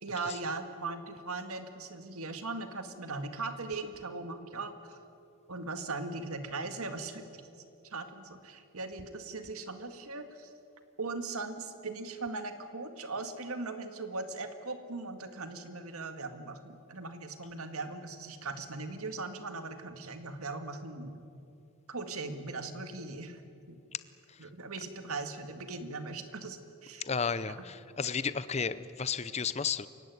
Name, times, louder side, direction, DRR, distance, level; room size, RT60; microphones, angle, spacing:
voice 1, 0.0-5.0 5.5-7.4 7.8-10.5 11.0-21.1 21.9-23.4 23.7-23.8 24.4-27.1 27.5-27.6, right 3 dB, 90° right, 8 dB, 2.0 m, -39 dB
voice 2, 27.0-29.9, left 6 dB, 30° left, 15 dB, 0.7 m, -33 dB
28.5 x 16.5 x 9.4 m, 2.6 s
head